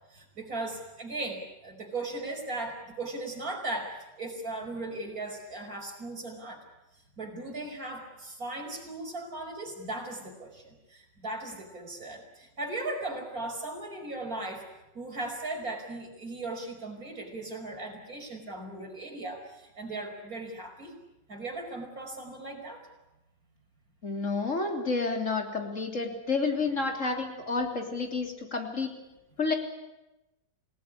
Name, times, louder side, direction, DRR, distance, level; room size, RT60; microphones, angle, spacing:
voice 1, 0.1-6.6 7.2-14.7 14.9-20.9 21.3-22.8, right 2 dB, 50° right, 2 dB, 5.8 m, -37 dB
voice 2, 24.0-28.9 29.4-29.5, left 4 dB, 40° left, 3 dB, 3.7 m, -30 dB
28.0 x 18.0 x 9.9 m, 0.97 s
omnidirectional pair, 2.0 m